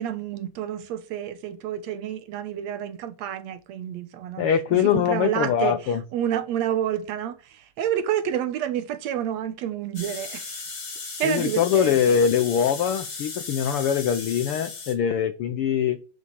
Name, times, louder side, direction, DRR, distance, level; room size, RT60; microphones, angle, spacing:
voice 1, 0.0-10.6 11.2-12.2, right 10 dB, 70° right, 1.9 m, -29 dB
voice 2, 4.4-6.0 11.2-16.0, left 8 dB, 80° left, 1.2 m, -23 dB
sound 1, 10.0-14.9, left 4 dB, 40° left, 3.6 m, -36 dB
11.0 x 6.6 x 8.6 m
omnidirectional pair, 3.6 m